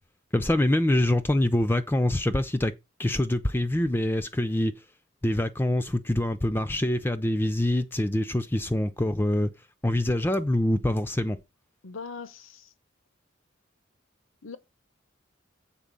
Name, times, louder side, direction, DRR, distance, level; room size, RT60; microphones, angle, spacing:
voice 1, 0.3-2.7 3.0-4.7 5.2-9.5 9.8-11.4, left 1 dB, 10° left, 0.5 m, -25 dB
voice 2, 11.8-12.7 14.4-14.6, left 5 dB, 85° left, 0.9 m, -40 dB
7.4 x 4.4 x 6.7 m
head